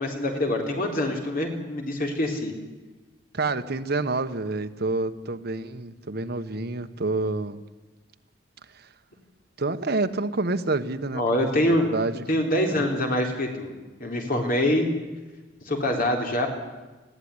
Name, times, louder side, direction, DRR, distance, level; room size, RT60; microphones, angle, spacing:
voice 1, 0.0-2.5 11.2-11.9 12.3-13.7 14.0-14.9 15.7-16.5, left 1 dB, 50° left, 2 dB, 3.9 m, -25 dB
voice 2, 3.3-7.6 8.7-8.9 9.6-12.2 12.8-12.9, right 3 dB, 60° right, 9 dB, 1.2 m, -28 dB
20.5 x 15.0 x 9.8 m, 1.2 s
head